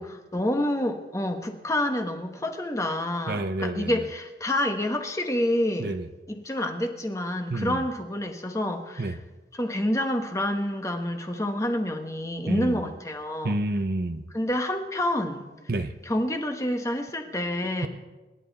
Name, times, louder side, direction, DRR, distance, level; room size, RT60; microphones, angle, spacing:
voice 1, 0.0-6.0 6.3-9.2 9.5-13.6 14.3-15.4 16.0-17.9, left 1 dB, 15° left, 1.3 m, -28 dB
voice 2, 3.3-4.0 5.8-6.1 7.5-7.8 9.0-9.2 12.5-12.9 13.4-14.3 15.7-15.9, right 2 dB, 55° right, 0.8 m, -29 dB
26.5 x 11.5 x 4.1 m
head